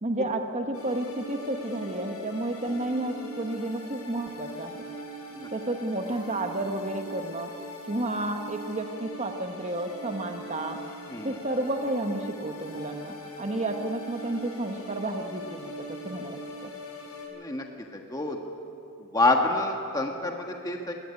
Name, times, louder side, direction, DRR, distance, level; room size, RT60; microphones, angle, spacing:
voice 1, 0.0-4.9 5.5-7.5 7.9-10.8 11.2-16.7, right 1 dB, 30° right, 5 dB, 1.1 m, -31 dB
sound 1, 0.7-17.3, equal, 75° left, 6.7 m, -41 dB
voice 2, 11.1-11.4 17.3-17.6 17.9-18.4 19.0-20.9, left 2 dB, 15° left, 2 dB, 1.4 m, -27 dB
21.0 x 18.0 x 9.8 m, 2.7 s
head